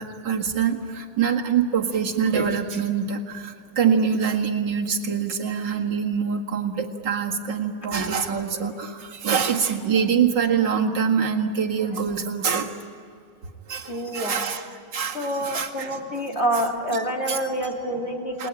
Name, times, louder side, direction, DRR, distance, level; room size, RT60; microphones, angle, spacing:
voice 1, 0.0-12.8 13.7-16.0 16.3-17.4 18.4-18.5, right 7 dB, 75° right, 1 dB, 2.6 m, -25 dB
voice 2, 13.9-14.4 15.1-18.5, right 1 dB, 35° left, 0 dB, 3.3 m, -27 dB
29.0 x 20.0 x 9.0 m, 2.4 s
omnidirectional pair, 2.0 m